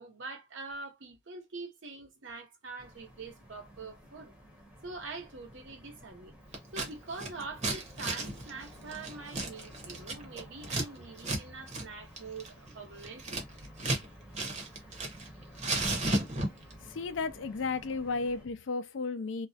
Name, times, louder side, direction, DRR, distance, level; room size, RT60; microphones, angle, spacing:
voice 1, 0.0-4.3 4.8-6.3 6.7-13.4, right 3 dB, 85° right, 1.0 m, -44 dB
sound 1, 2.8-18.5, equal, 5° right, 0.8 m, -52 dB
Scissors, 6.5-6.9 7.2-10.9 11.2-11.4 11.7-11.9 12.2-14.1 14.3-15.3 15.6-16.7, right 2 dB, 40° right, 0.8 m, -33 dB
voice 2, 16.9-19.5, left 4 dB, 70° left, 0.4 m, -33 dB
2.4 x 2.0 x 2.7 m
head